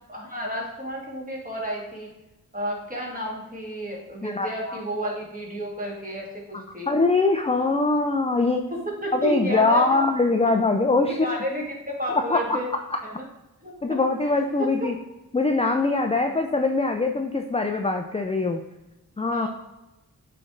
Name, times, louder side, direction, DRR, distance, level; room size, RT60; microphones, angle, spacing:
voice 1, 0.1-2.1 2.5-6.9 9.0-10.0 11.2-12.7 13.0-13.2 13.6-13.7 14.6-14.7 19.3-19.5, equal, 25° right, -3 dB, 2.1 m, -31 dB
voice 2, 4.2-4.8 6.5-8.6 9.1-11.4 12.1-13.0 13.8-14.9 15.3-18.6 19.2-19.5, left 3 dB, 15° left, 4 dB, 0.4 m, -23 dB
7.8 x 3.4 x 3.8 m, 1.0 s
wide cardioid pair, 60°, 36 cm